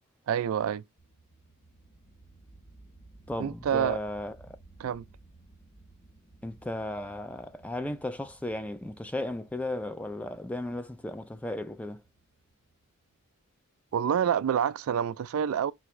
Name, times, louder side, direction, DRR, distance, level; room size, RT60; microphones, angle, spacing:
voice 1, 0.3-0.8 3.4-4.0 4.8-5.0 13.9-15.7, right 8 dB, 65° right, 0.3 m, -27 dB
sound 1, 1.0-13.4, right 2 dB, 20° left, 0.9 m, -57 dB
voice 2, 3.3-4.6 6.4-12.0, left 1 dB, 5° left, 0.5 m, -35 dB
4.8 x 3.3 x 3.1 m
head